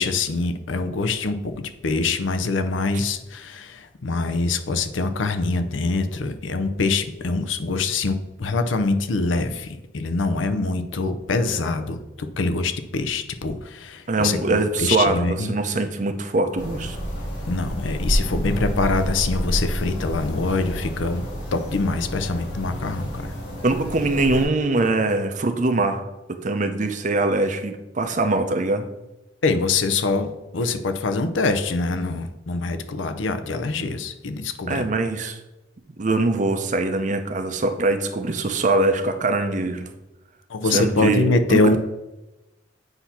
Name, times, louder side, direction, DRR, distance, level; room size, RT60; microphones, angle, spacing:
voice 1, 0.0-15.5 17.5-21.2 21.5-23.3 29.4-34.8 40.5-41.8, left 3 dB, 85° left, 9 dB, 0.6 m, -24 dB
voice 2, 14.1-17.0 23.6-26.0 26.3-28.8 34.7-35.4 36.0-39.9 40.7-41.2 41.5-41.8, right 2 dB, 40° right, 7 dB, 0.6 m, -22 dB
sound 1, 16.6-24.5, equal, 65° left, 2.0 m, -29 dB
8.0 x 2.8 x 5.7 m, 1.0 s
head